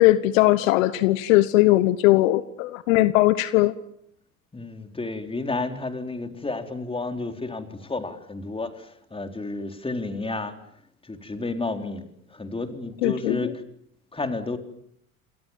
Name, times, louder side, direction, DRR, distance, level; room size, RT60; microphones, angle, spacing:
voice 1, 0.0-3.7 13.0-13.5, left 17 dB, 60° left, 1.2 m, -19 dB
voice 2, 4.5-10.6 11.0-12.0 12.3-13.5 14.1-14.6, left 3 dB, 10° left, 4.1 m, -31 dB
29.0 x 27.0 x 7.4 m
figure-of-eight pair, 75°, 44 cm